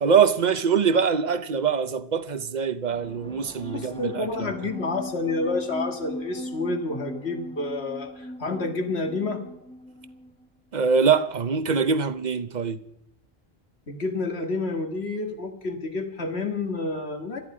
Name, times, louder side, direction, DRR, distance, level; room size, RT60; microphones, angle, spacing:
voice 1, 0.0-4.5 10.7-12.8, right 6 dB, 45° right, 0.8 m, -23 dB
sound 1, 2.9-10.5, equal, 5° left, 0.8 m, -39 dB
voice 2, 3.7-9.4 13.9-17.4, left 3 dB, 80° left, 2.2 m, -29 dB
17.5 x 13.5 x 5.0 m
omnidirectional pair, 1.1 m